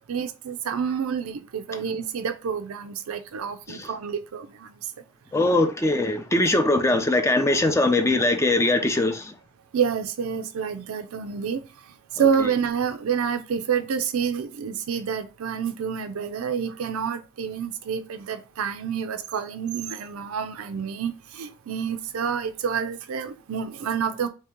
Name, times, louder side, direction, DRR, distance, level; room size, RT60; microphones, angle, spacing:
voice 1, 0.1-4.7 9.7-11.6 12.1-24.3, right 7 dB, 90° right, 0.4 m, -28 dB
voice 2, 5.3-9.3, left 2 dB, 15° left, 0.4 m, -21 dB
3.2 x 2.9 x 3.5 m
head